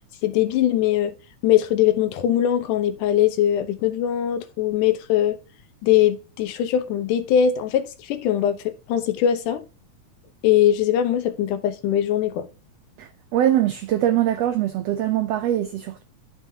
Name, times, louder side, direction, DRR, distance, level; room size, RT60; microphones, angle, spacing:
voice 1, 0.2-1.1 1.4-5.4 5.8-9.6 10.4-12.5, left 10 dB, 85° left, 2.4 m, -21 dB
voice 2, 13.0-16.0, right 12 dB, 90° right, 1.4 m, -22 dB
11.5 x 5.5 x 2.7 m
omnidirectional pair, 3.5 m